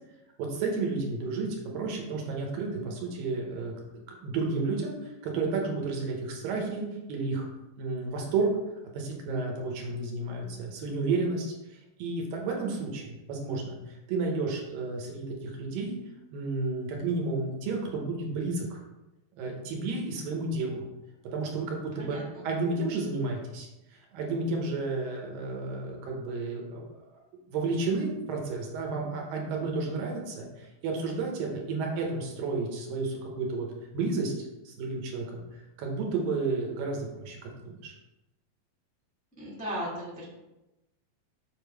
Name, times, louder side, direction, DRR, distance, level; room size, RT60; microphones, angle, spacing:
voice 1, 0.4-3.7 4.2-7.4 7.8-8.5 8.9-13.8 14.1-16.0 16.3-18.8 19.4-20.8 21.3-27.1 27.5-33.7 33.9-35.4 35.8-37.9, right 3 dB, 75° right, 0 dB, 2.8 m, -32 dB
voice 2, 22.0-22.4 39.4-40.2, equal, 15° left, -7 dB, 0.7 m, -36 dB
7.6 x 3.8 x 4.7 m, 0.99 s
omnidirectional pair, 4.3 m